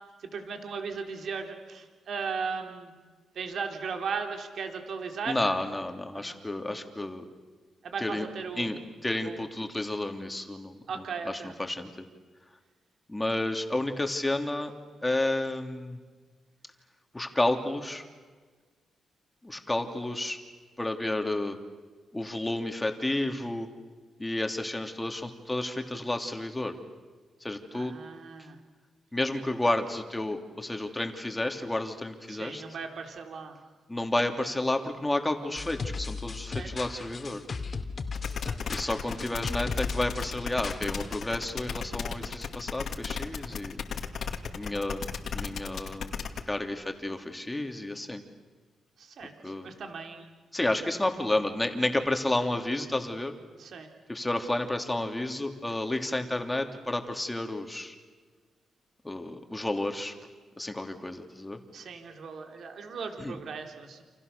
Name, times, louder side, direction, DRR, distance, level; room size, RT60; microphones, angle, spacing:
voice 1, 0.2-2.9 3.3-5.4 6.1-6.4 6.7-6.8 7.8-8.8 9.2-9.4 10.9-11.5 27.7-28.6 32.3-33.6 36.5-36.7 38.3-38.8 49.0-50.3 53.6-53.9 61.7-64.0, right 5 dB, 65° right, 4 dB, 3.7 m, -37 dB
voice 2, 5.3-7.2 8.0-8.3 8.6-10.8 11.2-12.1 13.1-14.7 15.0-16.0 17.1-18.0 19.4-20.4 20.8-21.6 22.1-23.7 24.2-26.8 27.4-28.0 29.1-32.6 33.9-37.4 38.7-43.8 44.5-45.1 45.3-46.1 46.5-48.2 49.4-49.7 50.5-53.3 54.1-57.9 59.0-60.1 60.6-61.6 63.2-63.3, left 1 dB, 15° left, 5 dB, 3.1 m, -31 dB
sound 1, 35.6-41.4, left 4 dB, 40° left, 2.5 m, -37 dB
sound 2, 38.1-46.4, left 6 dB, 65° left, 2.3 m, -35 dB
29.5 x 28.0 x 6.9 m, 1.4 s
cardioid pair, 95°, 0 cm